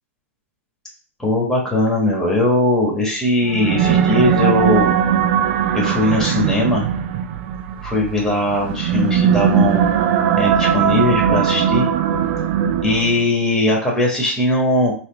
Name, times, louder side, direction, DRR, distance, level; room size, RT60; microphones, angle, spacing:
voice 1, 1.2-6.9 7.8-9.8 10.4-11.9 12.8-14.9, left 1 dB, 5° left, -2 dB, 1.3 m, -19 dB
sound 1, 3.4-13.3, right 8 dB, 50° right, 0.4 m, -19 dB
4.1 x 2.3 x 3.2 m, 0.42 s
hypercardioid pair, 130°, 8 cm